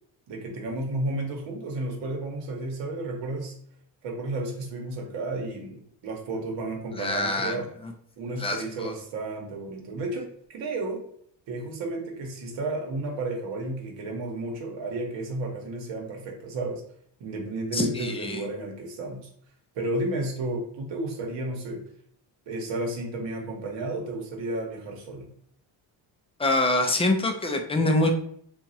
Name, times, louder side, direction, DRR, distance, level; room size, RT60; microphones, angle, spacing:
voice 1, 0.3-3.6 4.0-7.7 8.2-11.0 11.5-16.8 17.2-19.3 19.7-21.8 22.5-25.3, right 2 dB, 70° right, 1 dB, 1.0 m, -32 dB
voice 2, 6.9-7.9 8.4-8.9 17.7-18.5 26.4-28.1, left 2 dB, 15° left, 4 dB, 0.3 m, -25 dB
2.9 x 2.3 x 2.7 m, 0.65 s
cardioid pair, 90°, 46 cm